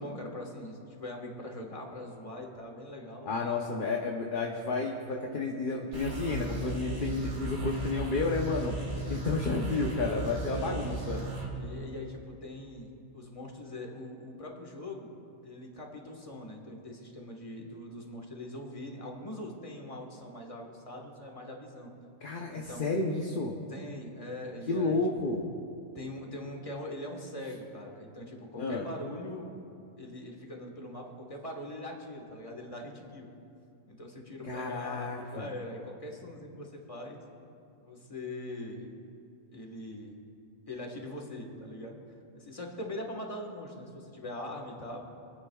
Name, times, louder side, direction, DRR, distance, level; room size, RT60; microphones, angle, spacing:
voice 1, 0.0-3.6 10.4-11.0 11.5-15.1 15.4-21.9 22.5-22.9 23.7-25.3 25.9-29.5 30.0-33.3 33.9-37.2 37.8-38.9 39.5-40.2 40.7-42.0 42.3-45.0, left 1 dB, 25° left, 1 dB, 1.4 m, -42 dB
voice 2, 3.3-8.7 9.1-11.2 22.2-23.6 24.7-25.5 28.6-28.8 34.4-35.5, left 3 dB, 45° left, 0 dB, 0.8 m, -31 dB
sound 1, 5.9-11.5, right 2 dB, 50° right, 2.3 m, -36 dB
28.5 x 9.8 x 2.3 m, 2.5 s
omnidirectional pair, 1.5 m